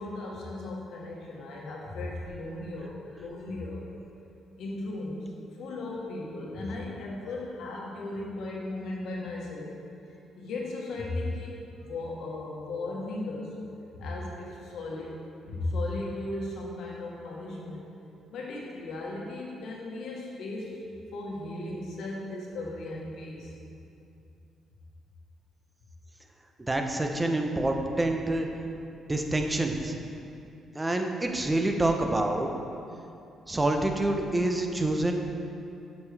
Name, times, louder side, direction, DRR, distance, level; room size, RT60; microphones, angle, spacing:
voice 1, 0.0-3.9 4.6-5.3 5.6-9.7 10.3-13.6 13.9-17.9 18.3-20.8 21.1-23.5, left 2 dB, 75° left, -2 dB, 1.2 m, -36 dB
voice 2, 26.6-28.5 29.1-29.9 30.7-32.5 33.5-35.1, right 2 dB, 15° right, 3 dB, 0.6 m, -27 dB
7.9 x 5.3 x 3.4 m, 2.6 s
cardioid pair, 90°, 0 cm